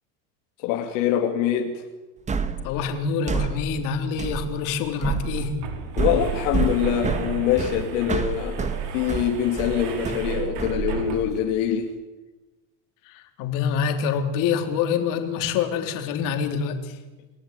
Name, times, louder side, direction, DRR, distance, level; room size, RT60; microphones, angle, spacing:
voice 1, 0.6-1.8 6.0-11.9, left 9 dB, 75° left, 2.9 m, -24 dB
sound 1, 2.3-11.4, right 5 dB, 20° right, 1.8 m, -29 dB
voice 2, 2.6-5.6 13.1-17.0, left 6 dB, 55° left, 3.8 m, -26 dB
sound 2, 5.1-11.5, right 6 dB, 65° right, 5.4 m, -37 dB
29.5 x 17.0 x 9.2 m
supercardioid pair, 135°, 38 cm